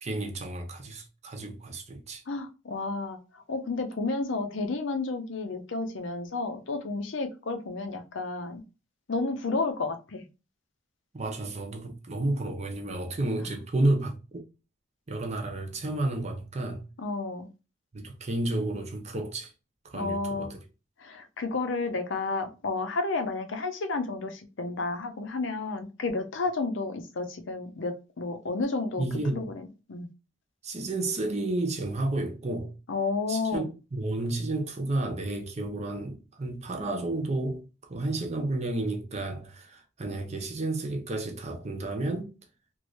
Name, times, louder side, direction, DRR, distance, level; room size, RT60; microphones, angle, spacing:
voice 1, 0.0-2.2 11.1-14.2 15.1-16.8 17.9-19.5 19.8-20.6 29.0-29.4 30.6-32.7 33.3-37.6 37.9-42.3, right 2 dB, 35° right, 0.7 m, -31 dB
voice 2, 2.3-8.6 9.1-10.2 13.4-13.5 17.0-17.5 19.9-20.5 21.0-29.1 29.3-29.6 29.9-30.1 32.9-33.7, left 3 dB, 65° left, 0.6 m, -31 dB
3.0 x 2.5 x 3.1 m
head